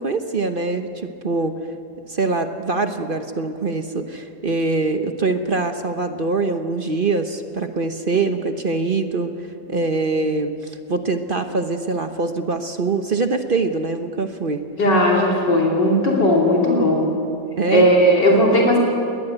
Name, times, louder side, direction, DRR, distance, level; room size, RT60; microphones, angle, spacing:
voice 1, 0.0-1.5 2.1-9.3 9.7-14.6 17.6-17.9, right 3 dB, 40° right, 7 dB, 0.9 m, -23 dB
voice 2, 14.8-17.1 17.7-18.8, equal, 85° left, -2 dB, 3.6 m, -16 dB
21.0 x 20.0 x 8.1 m, 2.5 s
omnidirectional pair, 1.8 m